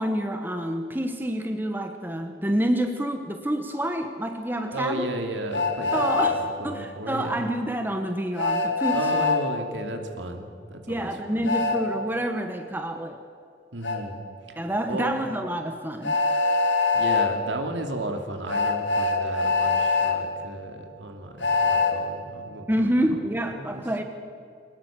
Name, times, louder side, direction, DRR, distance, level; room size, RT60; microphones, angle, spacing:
voice 1, 0.0-5.1 5.9-9.2 10.9-13.2 14.6-16.2 22.7-24.0, right 1 dB, 10° right, 5 dB, 1.1 m, -28 dB
voice 2, 4.7-7.4 8.9-11.5 13.7-14.2 14.5-14.6 14.9-15.1 16.9-22.9 23.3-23.8, right 1 dB, 80° right, 5 dB, 2.7 m, -34 dB
Train, 5.5-6.3 8.4-9.4 11.4-11.8 13.8-14.0 16.0-17.3 18.5-20.1 21.4-21.9, left 3 dB, 85° left, 2.6 m, -23 dB
22.5 x 20.0 x 7.4 m, 2.4 s
head